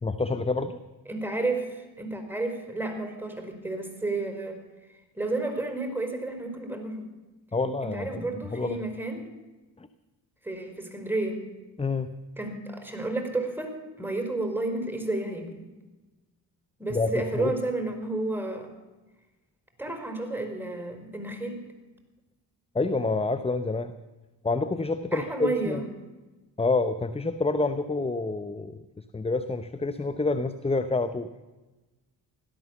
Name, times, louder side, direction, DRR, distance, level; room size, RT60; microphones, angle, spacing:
voice 1, 0.0-0.8 7.5-8.8 9.8-9.9 11.8-12.1 16.9-17.5 22.7-23.9 24.4-25.8 26.6-31.3, left 3 dB, 10° left, 13 dB, 0.8 m, -28 dB
voice 2, 1.1-4.6 5.2-7.1 7.8-9.3 10.4-11.4 12.4-15.7 16.8-18.7 19.8-21.6 25.1-25.8, right 2 dB, 5° right, 4 dB, 4.5 m, -31 dB
16.5 x 12.0 x 7.1 m, 1.2 s
hypercardioid pair, 45°, 48 cm